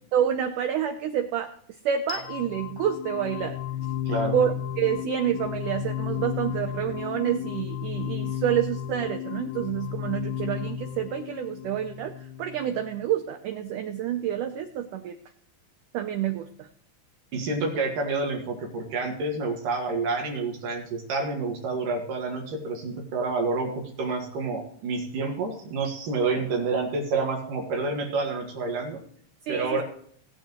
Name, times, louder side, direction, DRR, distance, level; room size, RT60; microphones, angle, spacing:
voice 1, 0.1-1.5 1.8-3.6 4.3-15.1 15.9-16.7 29.5-29.8, right 10 dB, 85° right, 6 dB, 1.8 m, -28 dB
sound 1, 2.1-13.0, left 11 dB, 80° left, 2.0 m, -33 dB
voice 2, 17.3-29.0 29.5-29.8, right 3 dB, 60° right, 1 dB, 3.2 m, -28 dB
19.0 x 8.9 x 3.0 m, 0.63 s
omnidirectional pair, 4.6 m